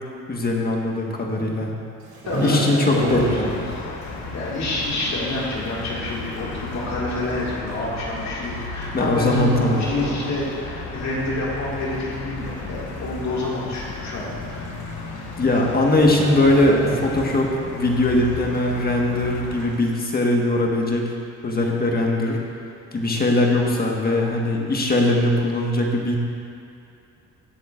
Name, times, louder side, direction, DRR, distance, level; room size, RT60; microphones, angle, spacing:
voice 1, 0.3-1.7 2.4-3.6 8.9-9.8 15.4-21.0 21.4-22.4 22.9-26.1, left 1 dB, 30° left, 0 dB, 1.5 m, -21 dB
voice 2, 1.4-1.7 2.2-3.8 4.3-14.7, left 2 dB, 65° left, -6 dB, 2.3 m, -28 dB
sound 1, 2.0-3.8 4.0-4.3 4.9-5.0 5.8-5.9 6.2-6.3 7.1-7.3 8.4-8.8 9.1-10.7 11.0-11.2 11.7-12.3 12.6-12.7 12.9-13.0 13.4-13.5 14.5-14.6 14.9-15.2 15.4-15.6 15.9-17.6 18.0-18.1, left 1 dB, 90° right, 2.2 m, -27 dB
sound 2, 3.0-19.7, left 3 dB, 90° left, 1.1 m, -34 dB
17.0 x 7.7 x 2.5 m, 2.6 s
cardioid pair, 90°, 30 cm